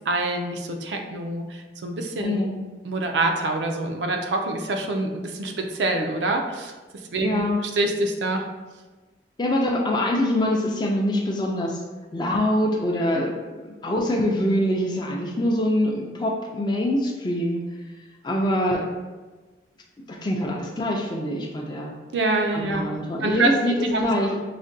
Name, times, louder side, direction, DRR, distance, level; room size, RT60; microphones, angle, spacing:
voice 1, 0.1-2.5 2.8-6.7 7.1-8.5 22.1-22.9 23.2-23.5 23.8-24.5, right 2 dB, 85° right, 4 dB, 0.4 m, -26 dB
voice 2, 2.2-2.5 7.2-7.6 9.4-11.8 12.1-17.6 18.2-18.8 20.1-22.0 22.5-24.3, left 1 dB, 25° left, 0 dB, 0.4 m, -24 dB
4.8 x 2.1 x 2.6 m, 1.3 s
head